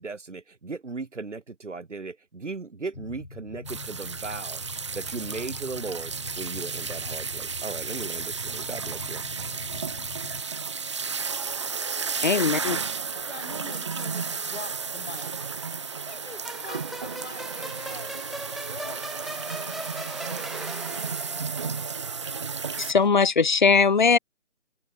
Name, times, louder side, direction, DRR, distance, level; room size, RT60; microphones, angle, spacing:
voice 1, 0.0-4.6 4.9-9.2, right 4 dB, 65° right, 3.9 m, -37 dB
sound 1, 2.9-10.4, left 3 dB, 75° left, 4.1 m, -42 dB
sound 2, 3.7-22.9, right 5 dB, 25° right, 1.0 m, -33 dB
voice 2, 12.2-12.8 22.8-24.2, left 5 dB, 40° left, 0.9 m, -20 dB
voice 3, 13.1-18.2 18.7-19.8, left 4 dB, 60° left, 5.9 m, -45 dB
sound 3, 16.4-23.1, equal, ahead, 2.9 m, -40 dB
figure-of-eight pair, 160°, 38 cm